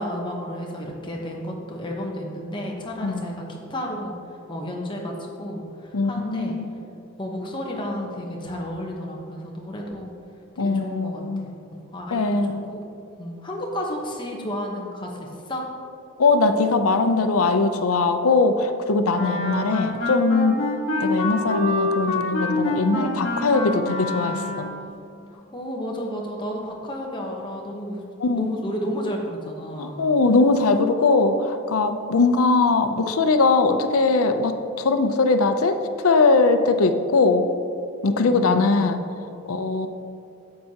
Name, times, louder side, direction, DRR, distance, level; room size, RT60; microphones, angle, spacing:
voice 1, 0.0-4.1 4.5-6.5 7.2-10.1 10.5-12.8 13.2-15.6 25.3-28.0 28.4-30.0 38.2-38.9, equal, 20° left, -1 dB, 0.9 m, -32 dB
voice 2, 5.9-6.7 10.6-11.5 12.1-12.7 16.2-20.6 21.0-24.7 28.2-28.5 29.8-35.8 36.0-37.5 38.0-39.0 39.5-39.9, left 3 dB, 85° left, 8 dB, 0.6 m, -20 dB
Wind instrument woodwind instrument, 19.1-24.8, left 2 dB, 65° left, 1.4 m, -26 dB
10.0 x 7.6 x 2.9 m, 2.6 s
head